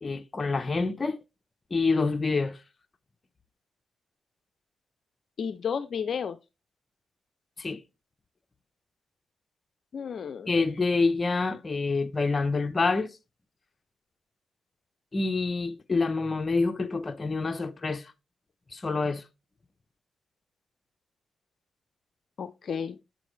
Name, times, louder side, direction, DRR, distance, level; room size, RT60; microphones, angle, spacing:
voice 1, 0.0-1.2 1.7-2.6 7.6-7.8 10.5-13.1 15.1-18.1 18.7-19.2, left 3 dB, 35° left, 1.0 m, -27 dB
voice 2, 5.4-6.4 9.9-10.5 22.4-23.0, left 7 dB, 65° left, 0.5 m, -32 dB
7.4 x 7.3 x 3.3 m
cardioid pair, 65°, 0 cm